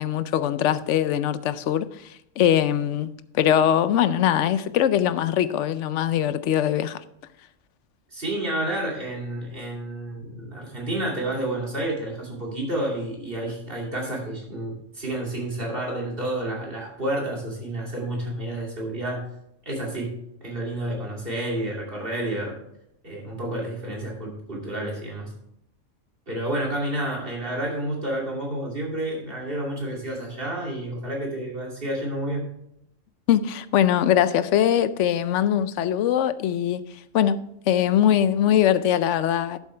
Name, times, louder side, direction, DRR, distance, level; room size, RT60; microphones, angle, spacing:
voice 1, 0.0-7.0 33.3-36.8 37.1-37.4 37.7-39.6, left 10 dB, 70° left, 0.9 m, -22 dB
voice 2, 8.1-19.3 19.7-20.1 20.4-22.6 23.0-25.3 26.3-32.5, right 1 dB, 45° right, 2.8 m, -30 dB
11.5 x 7.5 x 3.3 m
omnidirectional pair, 1.3 m